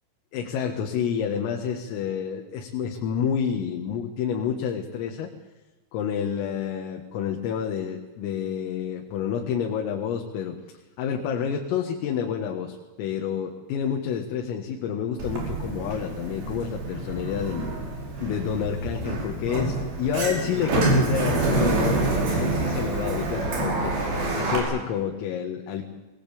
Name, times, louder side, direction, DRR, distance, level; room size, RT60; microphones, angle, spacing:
voice 1, 0.3-5.3 5.9-10.6 11.0-17.7 18.2-25.8, left 8 dB, 85° left, 2 dB, 4.3 m, -29 dB
Sliding door, 15.2-24.6, right 2 dB, 50° right, 6.0 m, -27 dB
21.5 x 19.5 x 8.6 m, 1.2 s
omnidirectional pair, 5.8 m